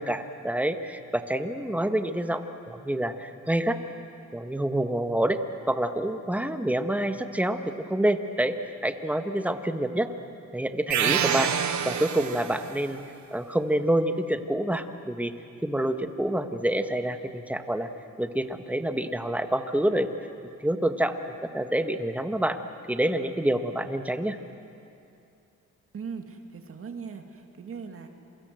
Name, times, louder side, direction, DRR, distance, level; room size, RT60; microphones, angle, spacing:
voice 1, 0.0-3.8 4.3-5.4 5.7-10.1 10.5-11.5 11.8-13.0 13.3-15.3 15.6-17.9 18.2-20.1 20.6-21.2 21.5-22.6 22.9-24.4, right 1 dB, 5° right, 8 dB, 1.5 m, -27 dB
sound 1, 10.9-12.8, right 9 dB, 70° right, 1.5 m, -27 dB
voice 2, 25.9-28.1, right 5 dB, 45° right, 5 dB, 2.4 m, -39 dB
28.0 x 24.0 x 7.8 m, 2.7 s
cardioid pair, 90°, 30 cm